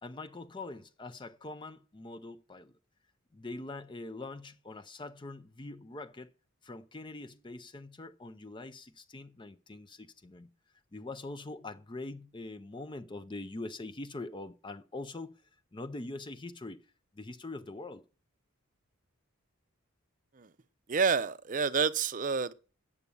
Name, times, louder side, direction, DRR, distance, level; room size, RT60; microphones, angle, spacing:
voice 1, 0.0-2.7 3.3-6.3 6.6-10.5 10.9-15.4 15.7-16.8 17.1-18.0, left 2 dB, 20° left, 0.5 m, -43 dB
voice 2, 20.9-22.5, right 5 dB, 35° right, 0.5 m, -28 dB
9.7 x 7.0 x 7.0 m
head